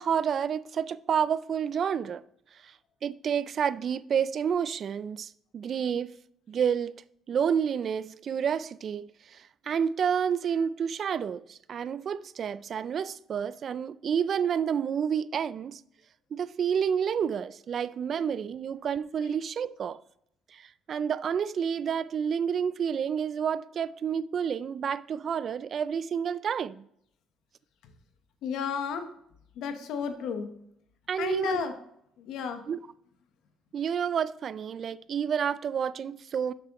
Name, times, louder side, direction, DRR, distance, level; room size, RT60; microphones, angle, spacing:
voice 1, 0.0-2.2 2.6-2.7 3.0-6.1 6.5-7.0 7.3-15.8 16.3-20.0 20.5-26.9 31.1-31.7 32.7-32.8 33.7-36.5, right 7 dB, 50° right, 0.3 m, -29 dB
voice 2, 28.4-29.1 29.6-30.5 31.2-31.7 32.2-32.6, left 7 dB, 75° left, 1.0 m, -32 dB
7.5 x 6.1 x 3.0 m
cardioid pair, 100°, 0 cm